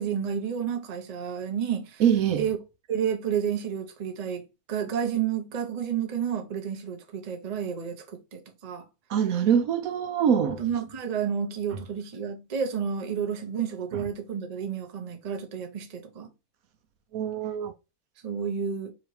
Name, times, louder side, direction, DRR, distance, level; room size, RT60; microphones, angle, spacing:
voice 1, 0.0-2.0 2.4-2.6 2.9-8.9 10.6-16.3 18.2-18.9, right 8 dB, 35° right, 0.7 m, -31 dB
voice 2, 2.0-2.4 9.1-10.6 17.1-17.7, right 8 dB, 70° right, 1.1 m, -24 dB
3.9 x 2.9 x 4.7 m
omnidirectional pair, 1.6 m